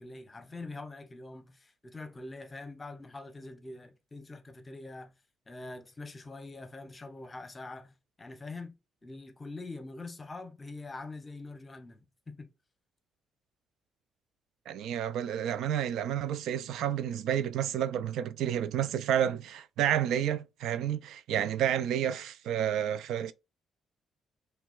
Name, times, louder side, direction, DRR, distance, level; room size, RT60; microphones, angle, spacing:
voice 1, 0.0-5.1 5.5-8.7 9.0-12.5, left 3 dB, 20° left, 0.9 m, -44 dB
voice 2, 14.7-23.3, right 10 dB, 85° right, 0.3 m, -30 dB
5.8 x 2.3 x 2.3 m
cardioid pair, 90°, 0 cm